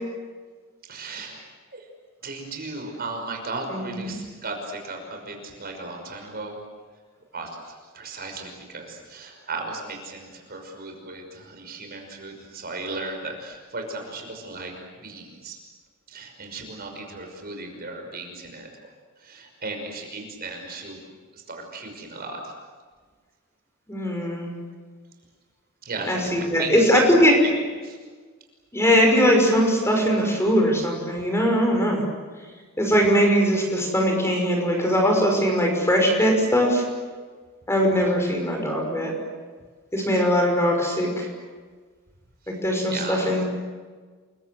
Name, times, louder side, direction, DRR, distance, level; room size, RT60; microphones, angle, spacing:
voice 1, 0.9-1.9 2.2-6.6 7.3-14.7 15.0-15.6 16.1-18.7 19.2-21.0 21.3-22.5 25.8-27.0 27.4-27.5 27.8-28.0 42.5-42.6 42.9-43.3, right 3 dB, 45° right, 3 dB, 5.7 m, -36 dB
voice 2, 3.7-4.0 23.9-24.5 26.0-27.4 28.7-32.0 32.8-36.8 37.7-39.1 39.9-41.3 42.5-43.4, equal, 15° left, 1 dB, 5.9 m, -21 dB
30.0 x 23.0 x 8.0 m, 1.5 s
head